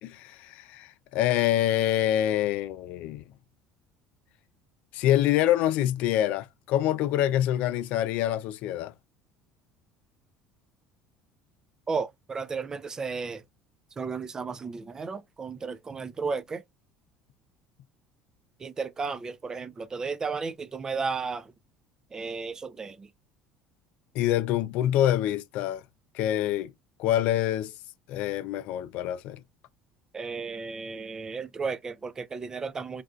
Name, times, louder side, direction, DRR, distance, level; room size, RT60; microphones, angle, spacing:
voice 1, 0.0-3.2 4.9-8.9 24.1-25.8 26.1-26.7 27.0-27.7 28.1-29.4, left 12 dB, 70° left, 0.4 m, -26 dB
voice 2, 11.9-13.4 14.0-16.6 18.6-21.5 22.1-23.1 30.1-33.0, right 4 dB, 25° right, 0.4 m, -34 dB
3.4 x 2.5 x 2.4 m
supercardioid pair, 95°, 2 cm